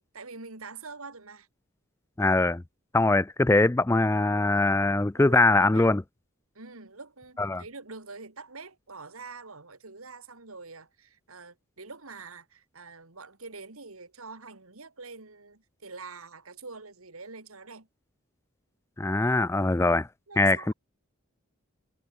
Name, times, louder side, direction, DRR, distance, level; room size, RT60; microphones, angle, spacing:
voice 1, 0.0-1.5 4.5-4.9 5.1-5.9 6.5-17.9 20.3-20.7, right 4 dB, 85° right, 2.9 m, -45 dB
voice 2, 2.2-2.6 2.9-6.0 7.4-7.6 19.0-20.1 20.4-20.7, left 2 dB, 10° left, 0.3 m, -22 dB
head